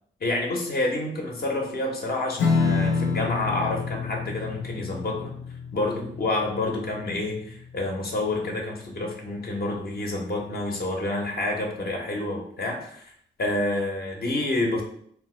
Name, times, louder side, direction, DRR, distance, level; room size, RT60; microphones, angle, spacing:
voice 1, 0.2-5.3 5.7-13.1 13.4-14.8, left 2 dB, 50° left, 0 dB, 0.9 m, -28 dB
Strum, 2.4-9.2, left 5 dB, 75° left, 0.5 m, -29 dB
2.6 x 2.1 x 3.7 m, 0.65 s
supercardioid pair, 45°, 20 cm